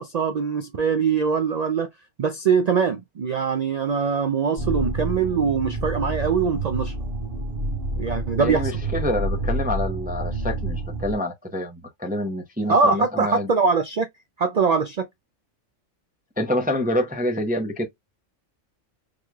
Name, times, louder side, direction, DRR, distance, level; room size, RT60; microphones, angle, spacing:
voice 1, 0.0-1.9 2.2-6.9 8.0-8.7 12.7-14.1 14.4-15.1, right 5 dB, 90° right, 0.3 m, -22 dB
sound 1, 4.6-11.1, right 2 dB, 45° right, 1.5 m, -28 dB
voice 2, 8.4-13.5 16.4-17.9, left 1 dB, 10° right, 0.5 m, -27 dB
3.8 x 3.1 x 2.3 m
omnidirectional pair, 1.3 m